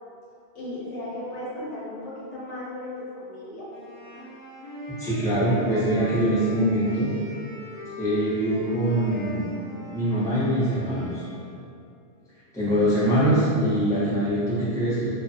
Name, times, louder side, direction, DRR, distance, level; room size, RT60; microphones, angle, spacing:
voice 1, 0.5-3.7, left 1 dB, 90° left, -7 dB, 1.1 m, -35 dB
Wind instrument woodwind instrument, 3.7-11.6, left 2 dB, 45° left, 0.8 m, -41 dB
voice 2, 5.0-7.1 8.0-9.4 9.9-11.2 12.5-15.1, right 1 dB, 5° left, -13 dB, 0.7 m, -23 dB
2.3 x 2.3 x 2.6 m, 2.4 s
omnidirectional pair, 1.2 m